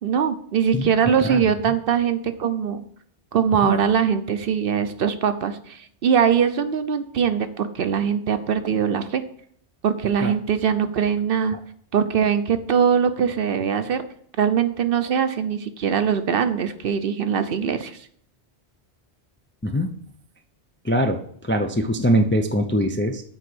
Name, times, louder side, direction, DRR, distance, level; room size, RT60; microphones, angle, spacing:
voice 1, 0.0-2.8 3.3-9.2 9.8-11.6 11.9-14.0 14.4-18.0, right 7 dB, 60° right, 10 dB, 0.8 m, -22 dB
voice 2, 20.8-23.2, equal, 15° left, 5 dB, 0.4 m, -22 dB
7.9 x 4.8 x 6.0 m, 0.64 s
omnidirectional pair, 1.1 m